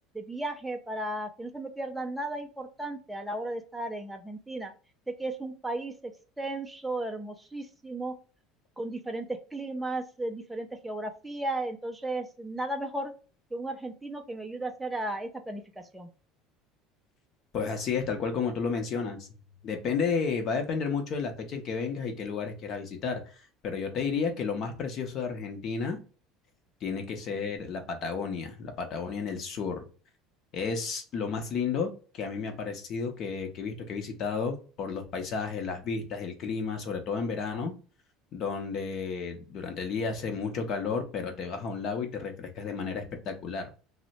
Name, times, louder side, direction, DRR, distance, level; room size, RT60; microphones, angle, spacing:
voice 1, 0.1-4.7 5.2-8.1 8.8-13.1 13.5-16.1, right 2 dB, 5° right, 3 dB, 0.4 m, -35 dB
voice 2, 17.5-23.3 23.6-26.0 26.8-29.9 30.5-37.7 38.3-43.7, left 5 dB, 40° left, 5 dB, 0.7 m, -32 dB
2.7 x 2.1 x 4.0 m, 0.37 s
cardioid pair, 155°, 0 cm